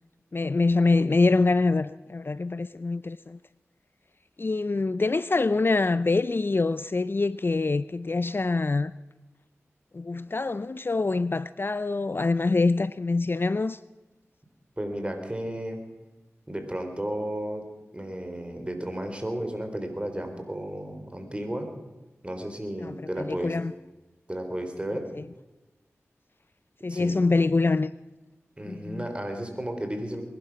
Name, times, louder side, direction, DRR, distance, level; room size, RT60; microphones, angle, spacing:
voice 1, 0.3-3.4 4.4-8.9 9.9-13.8 22.8-23.7 25.1-25.2 26.8-27.9 28.7-29.1, left 3 dB, 45° left, 0.5 m, -25 dB
voice 2, 14.8-15.8 16.5-21.7 22.2-23.6 24.3-25.1 26.9-27.2 28.6-30.2, right 1 dB, 20° right, 3.6 m, -33 dB
21.0 x 11.5 x 6.0 m
cardioid pair, 45°, 5 cm